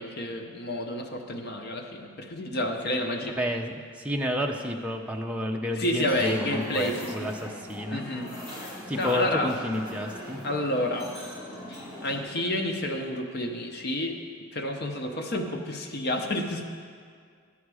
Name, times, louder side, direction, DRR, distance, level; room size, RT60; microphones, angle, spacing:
voice 1, 0.0-3.4 5.8-7.3 7.9-9.5 10.4-11.1 11.7-14.2 14.5-16.6, left 1 dB, 50° left, 4 dB, 0.7 m, -30 dB
voice 2, 3.4-8.0 8.9-10.4, left 1 dB, 5° right, 1 dB, 0.5 m, -30 dB
sound 1, 6.0-12.2, left 1 dB, 25° left, 1.8 m, -41 dB
11.0 x 7.2 x 4.8 m, 2.1 s
head